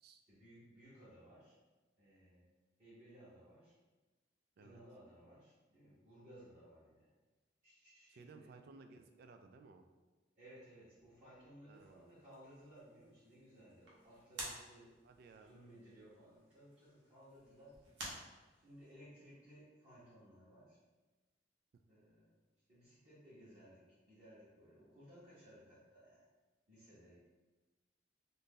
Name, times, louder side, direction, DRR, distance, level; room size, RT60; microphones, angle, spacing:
voice 1, 0.3-1.5 2.0-2.5 2.8-3.8 4.6-7.1 7.6-8.5 10.4-14.9 15.3-17.8 18.5-20.8 21.9-22.4 22.7-26.3 26.7-27.2, equal, 35° right, -12 dB, 1.0 m, -60 dB
voice 2, 8.1-9.9 11.7-12.1 15.0-15.5, right 4 dB, 55° right, 6 dB, 0.3 m, -58 dB
sound 1, 11.7-18.9, right 1 dB, 70° right, 0.9 m, -53 dB
2.7 x 2.6 x 3.7 m, 1.2 s
head